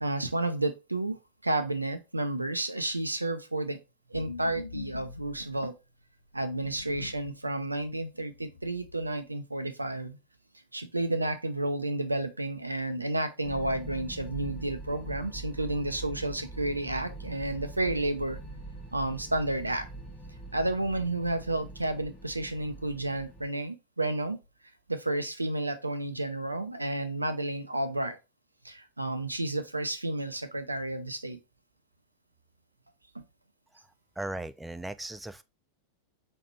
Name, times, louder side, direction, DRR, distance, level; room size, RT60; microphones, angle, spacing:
voice 1, 0.0-3.8 4.1-5.7 6.3-10.2 10.7-18.4 18.9-19.9 20.5-24.4 24.9-28.2 28.6-31.4 33.1-33.2, right 2 dB, 85° right, 0.5 m, -31 dB
sound 1, 4.1-5.7 6.3-7.3 7.7-7.8 8.3-9.1, left 4 dB, 80° left, 0.9 m, -43 dB
sound 2, 13.4-23.5, right 2 dB, 15° left, 2.0 m, -43 dB
voice 2, 34.2-35.4, right 1 dB, 5° right, 0.3 m, -37 dB
4.3 x 4.1 x 3.0 m
figure-of-eight pair, 90°, 0 cm